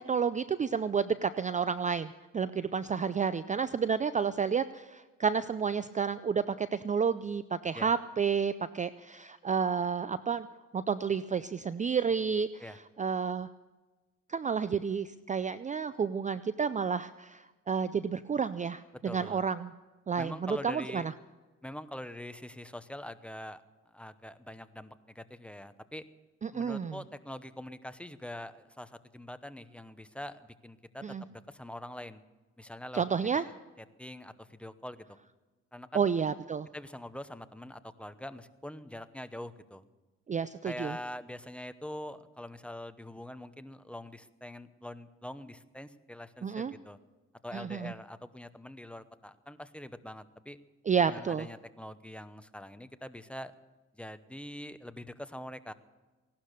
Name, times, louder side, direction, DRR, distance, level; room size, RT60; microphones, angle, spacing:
voice 1, 0.0-10.5 10.7-12.6 13.0-13.5 14.3-19.7 20.1-21.1 26.4-27.0 31.0-31.2 32.9-33.4 35.9-36.7 40.3-41.0 46.4-46.7 47.5-47.9 50.9-51.5, right 6 dB, 25° right, 14 dB, 0.5 m, -30 dB
voice 2, 19.0-19.4 20.2-21.1 21.6-23.6 23.9-26.0 26.5-31.0 31.3-32.2 32.6-33.0 34.0-35.2 35.7-36.1 36.7-39.8 40.6-47.0 47.4-50.6 51.1-53.5 53.9-55.7, left 1 dB, 5° left, 11 dB, 0.9 m, -44 dB
17.0 x 12.0 x 6.7 m, 1.2 s
cardioid pair, 90°, 30 cm